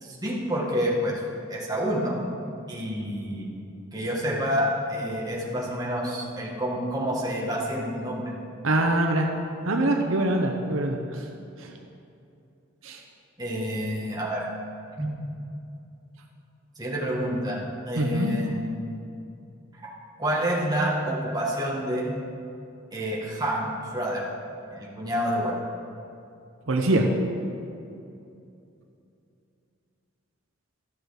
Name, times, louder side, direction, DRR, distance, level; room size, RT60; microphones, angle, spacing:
voice 1, 0.0-1.2 1.5-2.2 2.7-3.5 3.9-8.3 13.4-14.4 15.0-15.1 16.8-18.8 20.2-22.1 22.9-24.3 24.7-25.5, equal, 20° right, -4 dB, 1.6 m, -28 dB
voice 2, 8.6-9.3 9.6-11.2 11.6-11.7 12.8-13.0 18.0-18.4 26.7-27.1, right 1 dB, 75° right, 2 dB, 0.8 m, -24 dB
13.0 x 6.3 x 4.9 m, 2.6 s
head